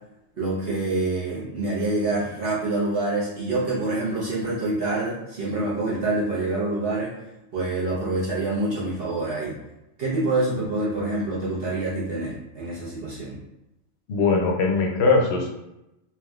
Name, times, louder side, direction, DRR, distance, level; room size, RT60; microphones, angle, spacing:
voice 1, 0.4-7.1 7.5-9.6 10.0-13.4, right 2 dB, 55° right, -8 dB, 1.0 m, -26 dB
voice 2, 14.1-15.6, left 3 dB, 65° left, 1 dB, 0.8 m, -21 dB
3.4 x 2.6 x 2.3 m, 0.90 s
omnidirectional pair, 1.3 m